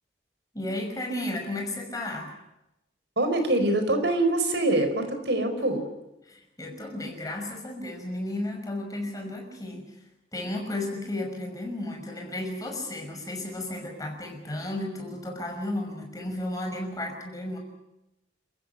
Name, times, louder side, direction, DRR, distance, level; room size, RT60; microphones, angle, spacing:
voice 1, 0.5-2.3 6.3-10.0 10.3-17.6, left 1 dB, 20° left, 2 dB, 5.9 m, -33 dB
voice 2, 3.2-5.8, right 2 dB, 70° right, 8 dB, 4.6 m, -24 dB
30.0 x 15.0 x 9.9 m, 0.92 s
head